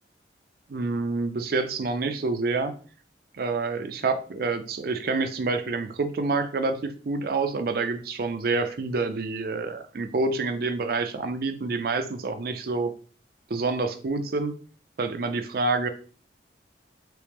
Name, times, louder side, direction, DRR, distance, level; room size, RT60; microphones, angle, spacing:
voice 1, 0.7-2.7 3.3-13.0 13.5-14.5 15.0-15.9, right 3 dB, 55° right, 9 dB, 0.5 m, -27 dB
3.4 x 3.1 x 3.1 m, 0.40 s
head